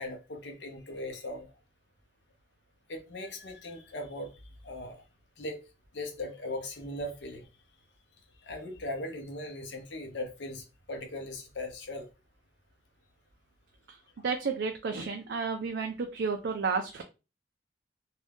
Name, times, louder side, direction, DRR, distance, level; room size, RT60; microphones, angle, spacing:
voice 1, 0.0-1.5 2.9-4.4 4.6-5.0 5.4-5.6 5.9-7.5 8.4-12.1, left 1 dB, 80° left, 0.7 m, -39 dB
voice 2, 14.2-17.0, right 5 dB, 70° right, 0.4 m, -31 dB
2.6 x 2.3 x 3.4 m
head